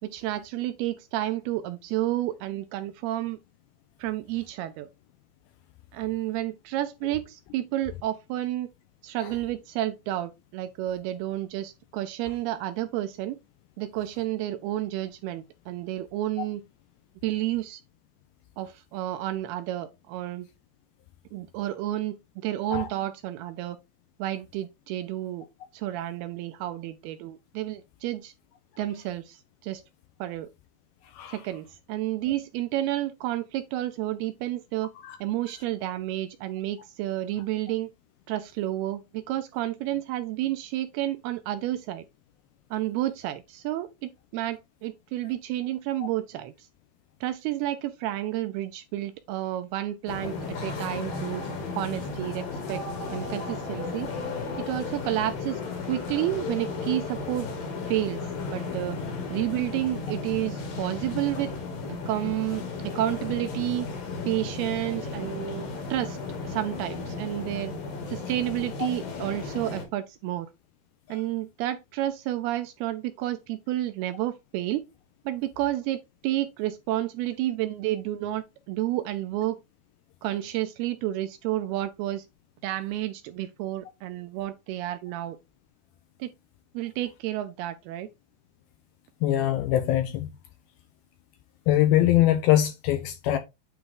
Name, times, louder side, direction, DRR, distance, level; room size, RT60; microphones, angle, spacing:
voice 1, 0.0-3.4 4.0-4.9 5.9-8.7 9.0-13.4 13.8-16.6 17.2-17.8 18.6-20.5 21.3-23.8 24.2-25.5 25.7-28.3 28.8-29.8 30.2-30.5 31.3-34.9 35.2-37.9 38.3-42.1 42.7-46.7 47.2-50.3 50.6-51.4 51.8-54.1 54.6-55.6 55.9-57.5 57.8-58.2 58.5-59.0 59.3-61.5 62.1-63.9 64.3-66.2 66.4-67.7 68.1-70.5 71.1-74.8 75.3-79.6 80.2-82.3 82.6-85.4 86.2-86.3 86.7-88.1, right 14 dB, 80° right, 2.3 m, -30 dB
sound 1, 50.1-69.9, left 4 dB, 60° left, 3.6 m, -34 dB
voice 2, 89.2-90.3 91.7-93.4, left 13 dB, 80° left, 2.3 m, -23 dB
9.3 x 3.5 x 3.8 m
omnidirectional pair, 4.9 m